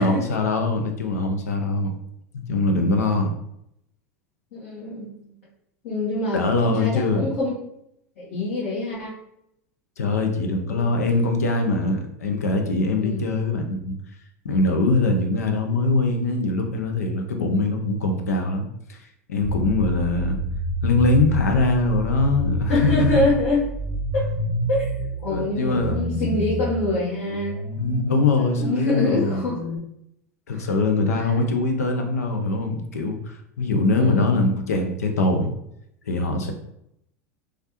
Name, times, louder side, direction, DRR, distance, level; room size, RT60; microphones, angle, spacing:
voice 1, 0.0-1.9 2.3-3.3 6.3-7.3 10.0-14.0 14.4-19.0 19.3-20.4 20.8-23.3 25.3-26.0 27.8-29.4 30.5-35.5 36.1-36.5, left 2 dB, 90° left, 4 dB, 0.5 m, -22 dB
voice 2, 4.5-5.1 5.8-7.5 8.2-9.1 10.7-10.9 13.0-13.3 22.7-23.6 24.1-24.2 24.7-24.9 25.2-27.6 28.5-29.6 30.5-30.6 31.1-31.4 33.9-34.4, left 2 dB, 70° left, -10 dB, 1.4 m, -25 dB
sound 1, 19.4-29.8, equal, 50° left, 1.3 m, -28 dB
3.1 x 2.4 x 2.9 m, 0.76 s
hypercardioid pair, 100°, 8 cm